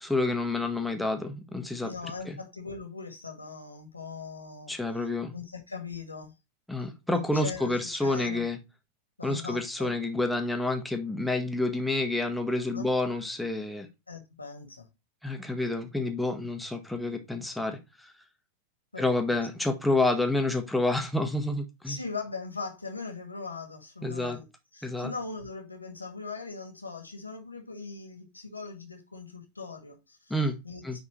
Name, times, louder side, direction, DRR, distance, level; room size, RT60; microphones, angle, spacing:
voice 1, 0.0-1.9 2.3-2.4 4.7-5.3 6.7-8.6 9.2-13.9 15.2-18.1 19.0-22.0 24.0-24.4 24.8-25.1 30.3-30.6 30.8-31.0, left 2 dB, ahead, 1.3 m, -29 dB
voice 2, 1.8-4.7 5.0-6.3 7.3-8.4 9.2-9.9 12.7-12.9 14.1-14.9 18.9-19.4 21.9-30.3 30.6-31.0, left 4 dB, 80° left, 1.8 m, -40 dB
9.6 x 4.0 x 3.1 m
figure-of-eight pair, 90°, 0 cm